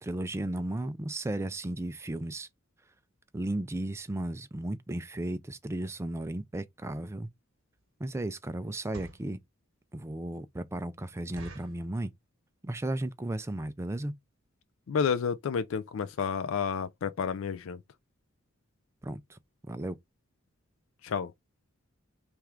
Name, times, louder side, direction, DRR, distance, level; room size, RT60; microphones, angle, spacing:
voice 1, 0.0-2.5 3.3-7.3 8.0-9.4 9.9-12.1 12.6-14.1 19.0-20.0, right 1 dB, 15° right, 0.4 m, -35 dB
sound 1, 7.1-7.3 7.8-8.0 8.7-9.3 9.9-10.0 10.3-10.4 10.8-10.9 11.4-11.9 12.5-12.7 13.0-13.1 13.3-13.6 14.1-14.2 14.5-14.6 15.0-15.1 15.3-15.4, right 2 dB, 70° right, 1.0 m, -47 dB
voice 2, 14.9-17.8 21.0-21.3, left 6 dB, 70° left, 0.4 m, -30 dB
3.4 x 2.4 x 4.3 m
head